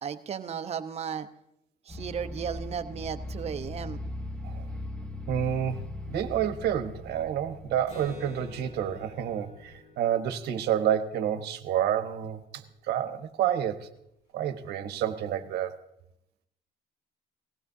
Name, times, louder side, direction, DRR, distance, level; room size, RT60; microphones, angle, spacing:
voice 1, 0.0-1.3 1.9-4.0, right 7 dB, 40° right, 8 dB, 0.8 m, -35 dB
sound 1, 1.9-9.8, left 1 dB, 5° left, 0.7 m, -40 dB
voice 2, 5.3-13.9 14.3-15.7, right 10 dB, 75° right, 8 dB, 1.1 m, -29 dB
Acoustic guitar, 7.9-11.5, left 3 dB, 45° left, 6.0 m, -49 dB
19.0 x 15.5 x 2.7 m, 0.83 s
cardioid pair, 110°, 17 cm